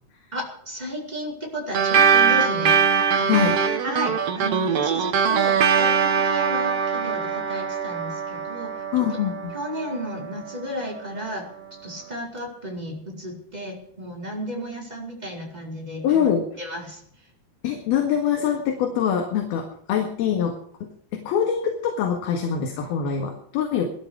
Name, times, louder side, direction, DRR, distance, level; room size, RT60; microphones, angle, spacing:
voice 1, 0.3-3.5 3.8-8.7 9.5-11.5 11.8-16.3 16.6-17.0, equal, 10° right, -1 dB, 5.0 m, -33 dB
sound 1, 1.7-10.6, right 6 dB, 55° right, 1.9 m, -22 dB
voice 2, 3.3-3.6 8.9-9.5 16.0-16.5 17.6-23.9, left 8 dB, 75° left, 2 dB, 3.6 m, -24 dB
18.5 x 13.5 x 4.8 m, 0.65 s
omnidirectional pair, 4.4 m